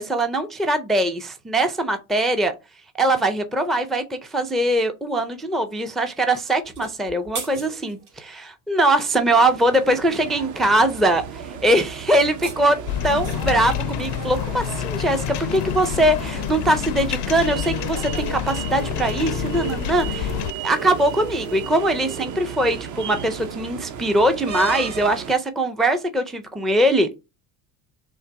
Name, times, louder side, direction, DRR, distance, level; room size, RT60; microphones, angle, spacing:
voice 1, 0.0-2.5 3.0-11.2 11.5-12.8 13.0-20.3 20.6-27.2, right 1 dB, ahead, 0.4 m, -21 dB
sound 1, 6.6-8.2 12.1-13.6, right 5 dB, 85° right, 2.0 m, -37 dB
sound 2, 9.1-25.4, right 8 dB, 40° right, 0.7 m, -34 dB
sound 3, 12.9-20.5, left 14 dB, 65° left, 0.5 m, -28 dB
3.8 x 2.9 x 4.5 m
supercardioid pair, 95°, 45 cm